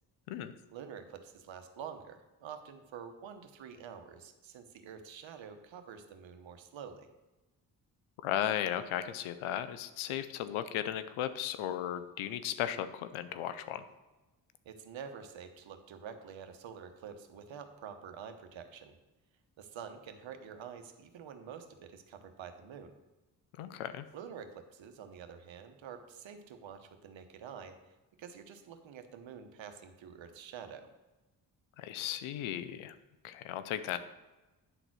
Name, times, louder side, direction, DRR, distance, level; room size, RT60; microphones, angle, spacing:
voice 1, 0.7-7.1 14.6-18.9 19.6-22.9 24.1-27.7 28.2-30.9, right 7 dB, 70° right, 8 dB, 1.1 m, -47 dB
voice 2, 8.2-13.8 23.6-24.1 31.8-32.9 33.2-34.0, left 11 dB, 85° left, 12 dB, 0.7 m, -36 dB
10.0 x 4.0 x 6.1 m, 1.1 s
supercardioid pair, 40°, 47 cm